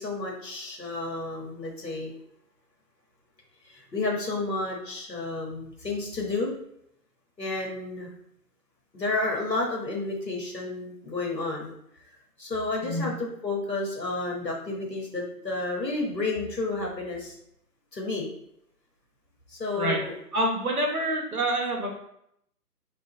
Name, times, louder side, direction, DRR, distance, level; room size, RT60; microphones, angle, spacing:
voice 1, 0.0-2.1 3.6-6.5 7.4-8.1 8.9-11.7 12.4-17.3 17.9-18.3 19.5-20.1, left 2 dB, 85° left, -1 dB, 1.6 m, -31 dB
voice 2, 20.3-21.9, right 1 dB, 65° right, 1 dB, 1.2 m, -27 dB
4.3 x 3.1 x 3.9 m, 0.75 s
figure-of-eight pair, 145°, 49 cm